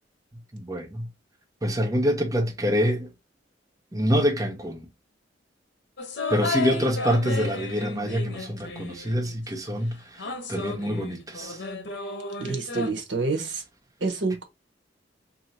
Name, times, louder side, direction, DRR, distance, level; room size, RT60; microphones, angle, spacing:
voice 1, 0.5-1.1 1.6-3.1 3.9-4.8 6.3-10.0 10.5-11.6, equal, 20° right, 0.8 m, -25 dB
sound 1, 6.0-9.3 10.2-12.9, left 3 dB, 65° left, 0.9 m, -33 dB
voice 2, 12.4-13.6 14.0-14.5, right 3 dB, 75° right, 1.0 m, -27 dB
2.9 x 2.8 x 4.1 m
head